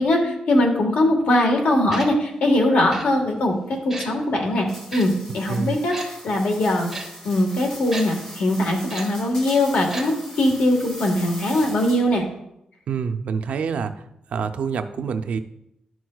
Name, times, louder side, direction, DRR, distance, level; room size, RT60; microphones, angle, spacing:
voice 1, 0.0-4.6 4.9-6.9 7.2-10.1 10.4-12.2, left 1 dB, 90° left, 2 dB, 1.5 m, -21 dB
Tick-tock, 1.9-2.1 2.9-3.0 3.9-4.1 4.9-5.0 5.9-6.1 6.9-7.0 7.9-8.0 8.9-9.0 9.9-10.0 10.3-10.4, right 2 dB, 10° right, 1.2 m, -32 dB
sound 1, 4.7-12.2, equal, 20° left, 1.2 m, -40 dB
voice 2, 12.9-14.0 14.3-15.4, right 6 dB, 70° right, 8 dB, 0.5 m, -26 dB
11.0 x 6.1 x 2.3 m, 0.80 s
wide cardioid pair, 175°, 2 cm